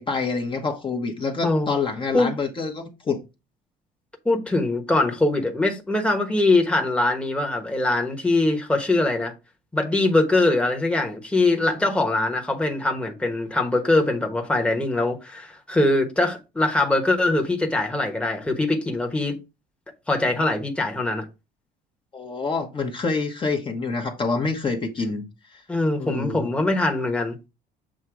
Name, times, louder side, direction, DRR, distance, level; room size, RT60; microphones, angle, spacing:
voice 1, 0.0-3.2 22.1-25.2 25.5-25.6 26.0-26.5, left 4 dB, 30° left, 1.1 m, -27 dB
voice 2, 4.2-9.3 9.7-19.4 20.1-21.2 25.7-27.5, left 2 dB, 5° left, 1.1 m, -22 dB
7.4 x 2.9 x 4.7 m
cardioid pair, 110°, 17 cm